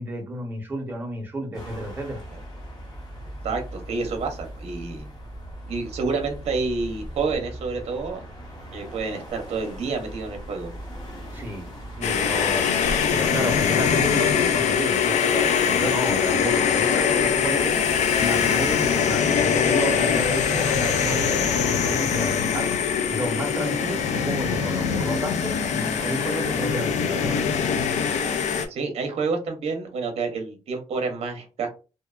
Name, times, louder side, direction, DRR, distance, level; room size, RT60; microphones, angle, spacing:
voice 1, 0.0-2.2 11.3-11.7 12.0-12.7 13.1-17.8 18.2-22.7 23.1-27.4, right 1 dB, 15° right, 0.7 m, -31 dB
sound 1, 1.5-21.2, equal, 35° left, 0.7 m, -40 dB
voice 2, 3.4-5.1 5.7-8.2 8.7-10.7 28.7-31.7, right 4 dB, 60° right, 0.6 m, -29 dB
sound 2, 12.0-28.7, left 7 dB, 85° left, 0.4 m, -22 dB
Keyboard (musical), 21.1-23.8, right 3 dB, 70° left, 1.2 m, -43 dB
2.7 x 2.2 x 2.3 m
wide cardioid pair, 165°, 12 cm